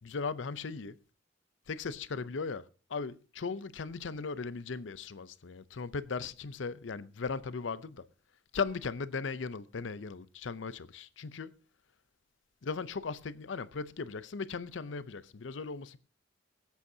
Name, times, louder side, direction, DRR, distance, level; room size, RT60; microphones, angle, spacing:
voice 1, 0.0-1.0 1.7-8.1 8.5-11.5 12.6-16.0, left 4 dB, 80° left, 0.6 m, -37 dB
23.5 x 8.1 x 2.7 m
head